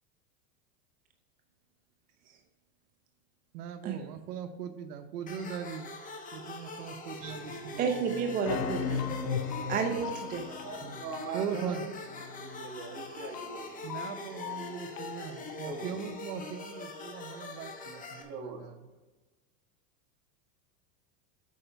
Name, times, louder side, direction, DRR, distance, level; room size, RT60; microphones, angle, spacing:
voice 1, 3.5-5.9 6.3-8.4 10.8-11.0 11.3-11.8 13.8-18.8, right 7 dB, 75° right, 8 dB, 0.9 m, -40 dB
sound 1, 5.3-18.2, left 2 dB, 15° left, 1.0 m, -44 dB
sound 2, 7.2-7.9 8.4-15.9, left 6 dB, 85° left, 1.2 m, -38 dB
voice 2, 7.8-9.2 9.7-10.4, right 6 dB, 20° right, 4 dB, 0.4 m, -31 dB
voice 3, 10.6-11.9 12.4-13.9 14.3-14.4 15.3-16.0 17.9-18.7, right 3 dB, 35° right, 1 dB, 1.8 m, -41 dB
8.5 x 4.6 x 5.6 m, 1.2 s
supercardioid pair, 135°, 47 cm